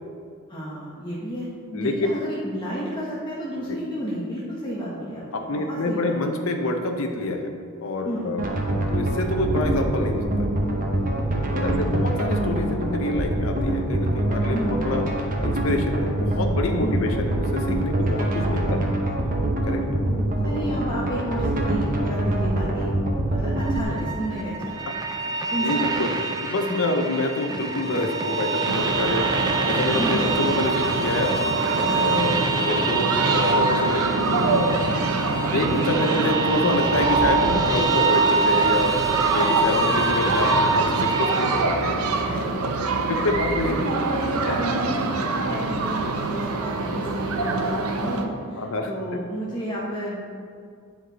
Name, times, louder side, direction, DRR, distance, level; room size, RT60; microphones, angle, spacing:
voice 1, 0.5-6.1 8.0-8.3 11.4-12.1 14.5-14.8 16.8-17.1 18.6-19.0 20.1-22.9 23.2-24.8 25.5-26.0 26.9-27.0 29.9-30.3 31.9-32.0 34.9-35.1 39.4-39.5 42.2-43.2 43.8-50.2, equal, 20° left, -7 dB, 1.0 m, -31 dB
voice 2, 1.7-2.1 3.7-3.8 5.3-7.5 7.8-8.4 8.9-10.6 11.5-15.0 15.4-18.9 19.7-20.0 24.9-25.4 25.6-26.2 26.4-29.2 29.6-31.3 31.6-34.8 35.5-39.0 39.3-42.0 43.1-43.9 48.6-48.9, left 2 dB, 65° left, 4 dB, 0.6 m, -27 dB
sound 1, 8.4-23.8, right 1 dB, 40° right, 0.9 m, -24 dB
sound 2, 23.6-41.6, right 3 dB, 20° right, 0.5 m, -25 dB
sound 3, 28.7-48.2, right 3 dB, 80° right, 0.6 m, -25 dB
10.0 x 4.7 x 3.9 m, 2.2 s
head